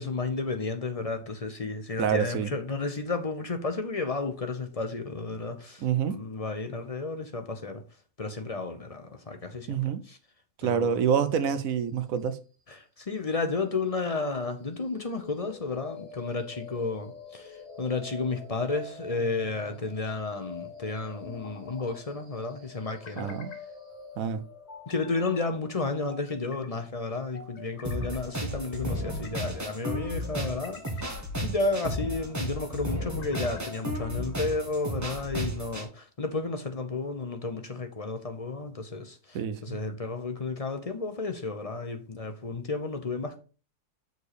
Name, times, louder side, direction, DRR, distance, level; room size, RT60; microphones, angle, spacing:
voice 1, 0.0-7.8 8.2-10.2 10.6-11.0 12.7-23.4 24.9-43.4, left 3 dB, 30° left, 0.7 m, -32 dB
voice 2, 2.0-2.5 5.8-6.2 9.7-10.0 10.6-12.4 23.2-23.5 24.2-24.4 39.3-39.8, right 8 dB, 70° right, 1.0 m, -27 dB
sound 1, 14.9-28.9, left 4 dB, 40° right, 1.8 m, -47 dB
sound 2, 21.2-22.0 22.8-23.6 24.7-25.4 26.1-26.7 27.3-28.2 28.8-29.5 30.2-31.1 31.7-32.2 33.0-33.8, left 5 dB, 50° left, 1.4 m, -47 dB
sound 3, 27.8-35.8, equal, 10° right, 1.4 m, -33 dB
6.6 x 4.5 x 4.9 m
omnidirectional pair, 1.6 m